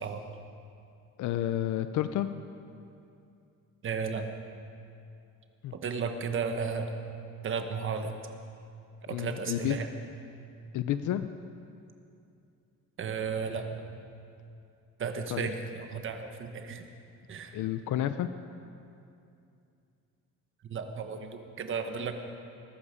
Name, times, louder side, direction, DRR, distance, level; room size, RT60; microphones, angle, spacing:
voice 1, 1.2-2.3 5.6-5.7 9.1-9.8 10.7-11.3 15.3-15.5 17.5-18.3, left 12 dB, 75° left, 11 dB, 0.6 m, -30 dB
voice 2, 3.8-4.3 5.8-6.9 7.4-8.1 9.1-9.9 13.0-13.8 15.0-16.9 17.3-17.6 20.7-22.1, right 5 dB, 40° right, 6 dB, 1.2 m, -34 dB
20.5 x 12.5 x 5.1 m, 2.6 s
cardioid pair, 165°, 31 cm